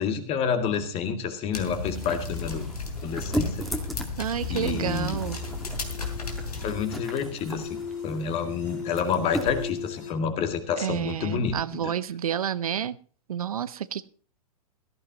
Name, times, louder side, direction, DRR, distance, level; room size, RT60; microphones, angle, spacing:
voice 1, 0.0-2.7 3.0-3.7 4.5-5.2 6.6-11.9, left 6 dB, 30° left, 2.1 m, -29 dB
sound 1, 1.5-6.7, left 3 dB, 80° left, 3.2 m, -34 dB
sound 2, 1.9-9.7, equal, ahead, 1.8 m, -37 dB
voice 2, 4.2-5.4 10.8-13.0 13.3-14.1, right 9 dB, 70° right, 0.6 m, -30 dB
sound 3, 4.4-10.1, left 6 dB, 55° left, 2.7 m, -39 dB
17.0 x 14.0 x 2.9 m
figure-of-eight pair, 105°, 19 cm